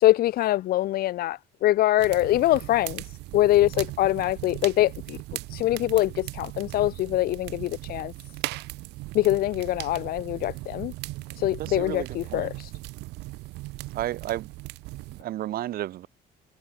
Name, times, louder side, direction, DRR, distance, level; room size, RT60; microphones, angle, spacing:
voice 1, 0.0-3.0 3.3-5.2 5.5-8.1 9.1-10.9 11.4-12.7, left 15 dB, 65° left, 0.5 m, -24 dB
sound 1, 2.0-15.2, right 21 dB, 90° right, 1.3 m, -38 dB
voice 2, 11.6-12.5 13.9-14.5 15.2-16.1, right 13 dB, 60° right, 0.8 m, -32 dB
cardioid pair, 110°, 17 cm